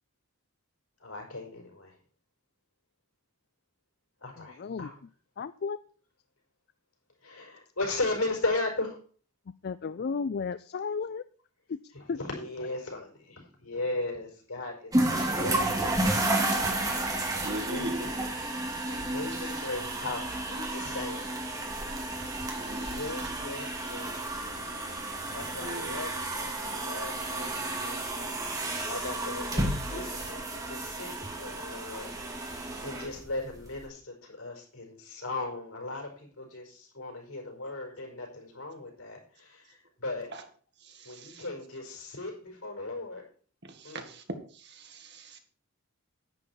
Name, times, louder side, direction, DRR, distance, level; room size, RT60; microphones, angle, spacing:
voice 1, 1.0-1.9 4.2-5.0 7.2-9.0 11.9-16.1 17.4-18.2 18.9-21.3 22.9-24.2 25.3-31.1 31.4-32.5 32.8-40.3 41.0-43.2 43.8-44.1, left 2 dB, 90° left, 1 dB, 5.4 m, -37 dB
voice 2, 4.4-4.9 5.4-5.8 9.6-11.2 11.7-11.8 12.1-12.2, left 5 dB, 50° left, 14 dB, 0.4 m, -33 dB
sound 1, 14.9-33.8, right 2 dB, 15° right, 2.6 m, -32 dB
voice 3, 17.4-18.1 19.0-19.7 22.2-23.2 25.5-26.0 40.3-40.4 40.8-41.5 43.7-44.2 44.5-45.4, right 1 dB, 55° right, 5 dB, 2.0 m, -41 dB
10.5 x 9.9 x 4.6 m, 0.43 s
head